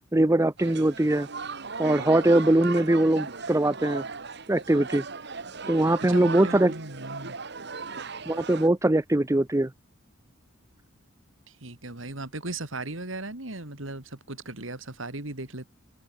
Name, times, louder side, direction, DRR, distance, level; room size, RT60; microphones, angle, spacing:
voice 1, 0.1-1.3 1.8-4.0 4.5-5.0 5.7-6.7 8.3-9.7, right 1 dB, 15° right, 0.6 m, -22 dB
sound 1, 0.6-8.7, right 4 dB, 55° right, 1.9 m, -37 dB
voice 2, 6.0-7.4 11.5-15.7, right 2 dB, 75° right, 3.5 m, -37 dB
open air
head